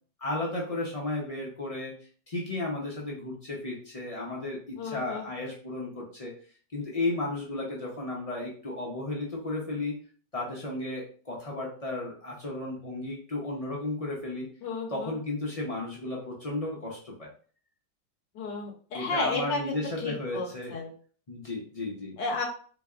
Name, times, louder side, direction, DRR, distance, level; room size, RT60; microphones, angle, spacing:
voice 1, 0.2-2.0 2.3-6.4 6.7-10.0 10.3-14.5 14.9-17.3 18.9-20.8 21.3-22.2, left 2 dB, 55° left, -3 dB, 0.4 m, -34 dB
voice 2, 4.8-5.2 14.6-15.1 18.3-20.9 22.2-22.4, left 3 dB, 85° left, 0 dB, 1.4 m, -33 dB
3.8 x 3.3 x 2.3 m, 0.43 s
omnidirectional pair, 1.8 m